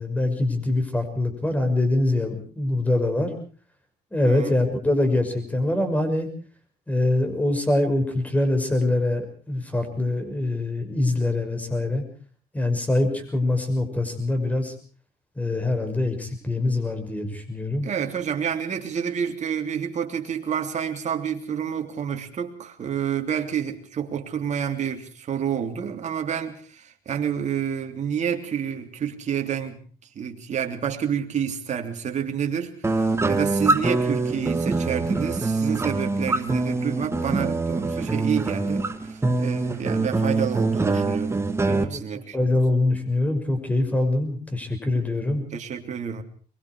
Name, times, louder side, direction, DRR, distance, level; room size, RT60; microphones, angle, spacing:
voice 1, 0.0-3.3 4.1-6.3 6.9-12.0 12.5-14.7 15.4-17.9 41.7-42.0 42.3-45.4, left 2 dB, 10° left, 6.1 m, -24 dB
voice 2, 4.2-4.5 17.8-29.8 30.1-41.4 41.7-42.6 45.5-46.2, right 8 dB, 45° right, 3.3 m, -29 dB
sound 1, 32.8-41.8, right 3 dB, 15° right, 2.0 m, -24 dB
23.5 x 23.0 x 4.8 m
cardioid pair, 110°, 17 cm